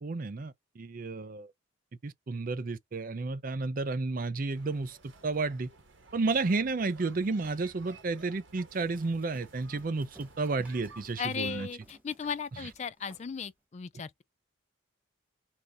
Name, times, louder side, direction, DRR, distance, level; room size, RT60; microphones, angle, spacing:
voice 1, 0.0-1.5 2.0-5.7 6.1-11.7 12.6-12.7, right 3 dB, 45° right, 0.5 m, -32 dB
sound 1, 4.5-11.7, right 3 dB, 75° right, 1.2 m, -55 dB
Run, 8.7-13.4, right 1 dB, 10° right, 1.1 m, -57 dB
voice 2, 11.2-14.2, left 6 dB, 35° left, 0.3 m, -36 dB
4.2 x 2.7 x 3.5 m
head